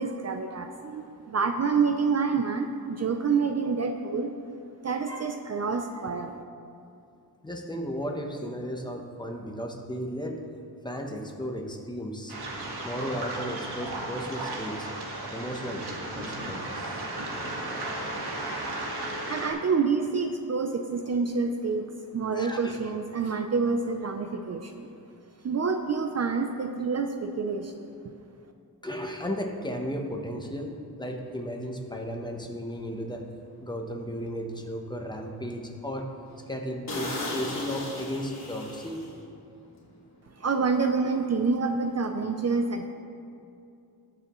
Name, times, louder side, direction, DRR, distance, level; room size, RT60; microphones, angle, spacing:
voice 1, 0.0-4.3 4.8-6.4 19.3-21.8 22.1-24.9 25.4-27.9 40.4-42.9, right 5 dB, 45° right, 6 dB, 0.5 m, -27 dB
voice 2, 7.4-10.4 10.8-12.3 12.8-14.9 15.3-15.8 16.1-17.1 17.3-17.5 22.3-22.8 28.8-30.7 31.0-33.2 33.6-36.1 36.5-39.0, equal, 10° left, 2 dB, 0.9 m, -35 dB
Waves surf, 12.3-19.5, right 2 dB, 80° right, 1.7 m, -35 dB
sound 1, 31.6-31.8 32.3-32.5 33.0-33.1 33.5-33.6 34.1-34.7 35.1-35.2 35.6-35.7 36.0-36.1 36.4-36.5 36.9-39.4 39.7-39.9, left 1 dB, 45° left, 2.5 m, -36 dB
20.5 x 7.0 x 3.0 m, 2.5 s
wide cardioid pair, 170°, 38 cm